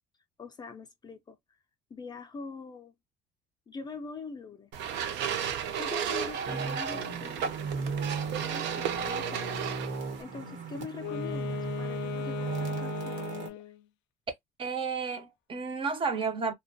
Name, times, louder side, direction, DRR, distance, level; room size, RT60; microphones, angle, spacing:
voice 1, 0.4-1.4 1.9-2.9 3.7-4.7 5.8-9.7 10.2-13.6, left 4 dB, 25° left, 0.4 m, -44 dB
sound 1, 4.7-10.2, right 8 dB, 70° right, 0.6 m, -33 dB
sound 2, 6.4-13.5, right 5 dB, 90° right, 1.1 m, -36 dB
Wind instrument woodwind instrument, 10.9-13.8, left 14 dB, 85° left, 0.4 m, -38 dB
voice 2, 14.6-16.5, right 5 dB, 30° right, 0.5 m, -32 dB
2.4 x 2.2 x 2.5 m
cardioid pair, 150°, 19 cm